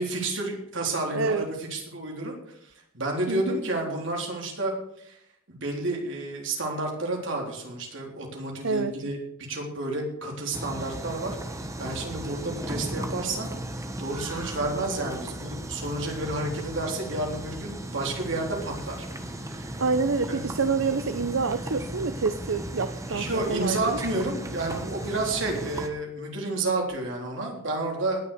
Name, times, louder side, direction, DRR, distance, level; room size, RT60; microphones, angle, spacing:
voice 1, 0.0-2.3 2.6-5.2 5.5-9.2 9.5-11.4 11.8-13.5 14.0-19.1 19.4-19.8 20.3-20.5 23.1-28.2, right 2 dB, 65° right, 0 dB, 3.8 m, -30 dB
voice 2, 1.1-1.4 3.3-3.6 8.6-8.9 19.8-24.0, right 4 dB, 85° right, 10 dB, 0.7 m, -27 dB
sound 1, 10.5-25.9, right 1 dB, 15° right, 1.2 m, -36 dB
19.0 x 6.5 x 6.9 m, 0.75 s
head